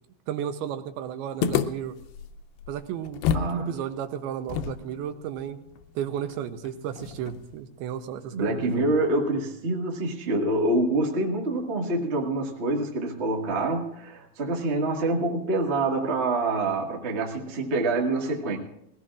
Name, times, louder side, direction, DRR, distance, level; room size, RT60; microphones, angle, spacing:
voice 1, 0.3-2.0 2.7-5.6 6.0-8.7, right 9 dB, 80° right, 8 dB, 2.6 m, -33 dB
sound 1, 1.4-3.6 3.8-3.9 4.5-7.6, left 8 dB, 80° left, 2.6 m, -31 dB
voice 2, 3.3-3.7 8.3-18.6, right 2 dB, 60° right, -1 dB, 0.6 m, -26 dB
21.0 x 17.0 x 2.5 m, 0.77 s
omnidirectional pair, 4.6 m